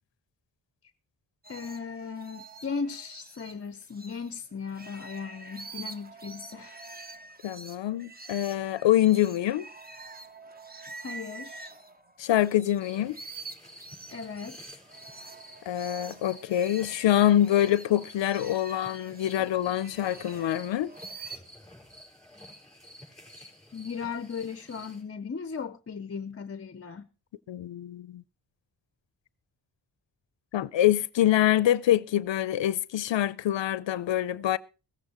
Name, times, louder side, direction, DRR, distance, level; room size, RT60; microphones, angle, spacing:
sound 1, 1.4-4.3 4.6-12.8 13.0-21.4, right 3 dB, 20° right, 1.0 m, -46 dB
voice 1, 1.5-6.8 11.0-11.7 14.1-14.6 19.4-19.5 21.3-21.4 23.4-27.1, left 5 dB, 35° left, 0.6 m, -37 dB
voice 2, 7.4-9.7 12.2-13.2 15.7-20.9 27.5-28.2 30.5-34.6, left 12 dB, 80° left, 0.5 m, -25 dB
sound 2, 12.8-25.0, equal, ahead, 5.0 m, -51 dB
16.0 x 14.5 x 2.9 m
wide cardioid pair, 90°, 43 cm